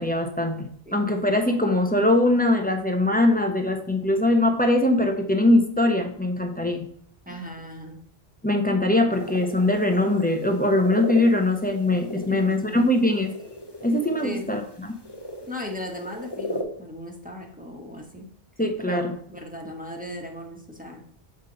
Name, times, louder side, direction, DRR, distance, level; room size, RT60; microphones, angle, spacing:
voice 1, 0.0-6.8 8.4-13.3 13.8-14.9 18.6-19.1, left 1 dB, 10° left, 4 dB, 0.8 m, -22 dB
voice 2, 7.3-8.0 12.3-12.8 14.2-14.6 15.5-18.3 18.9-21.0, left 1 dB, 10° right, 0 dB, 1.3 m, -37 dB
sound 1, 9.1-16.6, equal, 25° left, 1.1 m, -37 dB
7.3 x 5.3 x 4.0 m, 0.62 s
omnidirectional pair, 1.0 m